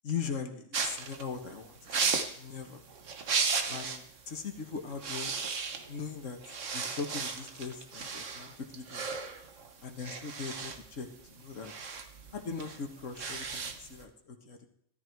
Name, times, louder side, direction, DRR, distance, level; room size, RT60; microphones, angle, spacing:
voice 1, 0.0-2.8 3.7-5.3 5.9-6.4 6.7-9.1 9.8-11.7 12.3-14.7, left 5 dB, 80° left, 4 dB, 1.9 m, -40 dB
sound 1, 0.7-4.1 4.4-4.6 4.9-6.1 6.4-14.0, right 5 dB, 75° right, 1.7 m, -35 dB
14.0 x 13.0 x 4.7 m, 0.70 s
omnidirectional pair, 1.3 m